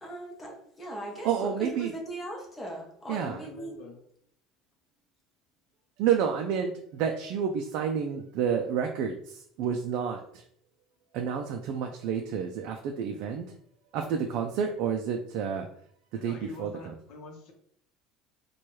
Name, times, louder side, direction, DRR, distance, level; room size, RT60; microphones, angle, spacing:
voice 1, 0.0-3.8, right 1 dB, 15° left, -1 dB, 0.8 m, -39 dB
voice 2, 1.2-1.9 3.1-3.4 6.0-10.4 11.1-13.5 13.9-15.7 16.2-16.9, right 7 dB, 55° right, 3 dB, 0.4 m, -30 dB
voice 3, 3.1-4.0 16.1-17.5, left 4 dB, 50° left, 2 dB, 0.8 m, -45 dB
4.4 x 2.3 x 3.0 m, 0.67 s
cardioid pair, 165°, 0 cm